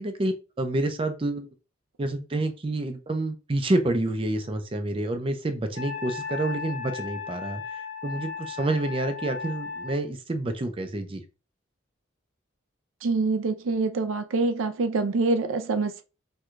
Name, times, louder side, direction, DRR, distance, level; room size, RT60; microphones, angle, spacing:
voice 1, 0.0-1.5 2.0-11.2, right 2 dB, 25° right, 0.4 m, -28 dB
Wind instrument woodwind instrument, 5.7-10.0, left 5 dB, 70° left, 0.6 m, -36 dB
voice 2, 13.0-16.0, right 3 dB, 85° right, 0.4 m, -25 dB
4.5 x 2.2 x 2.5 m
head